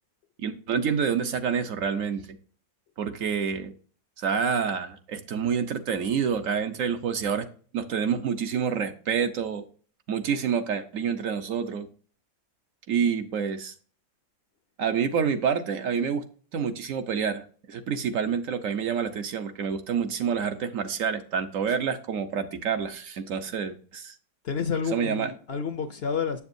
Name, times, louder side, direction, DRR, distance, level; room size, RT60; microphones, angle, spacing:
voice 1, 0.4-2.3 3.0-3.7 4.2-7.5 7.7-9.6 10.1-11.9 12.9-13.7 14.8-16.2 16.5-24.1 24.9-25.3, right 7 dB, 70° right, 1.2 m, -28 dB
voice 2, 24.4-26.4, left 6 dB, 60° left, 0.7 m, -29 dB
7.4 x 7.1 x 2.6 m
omnidirectional pair, 1.5 m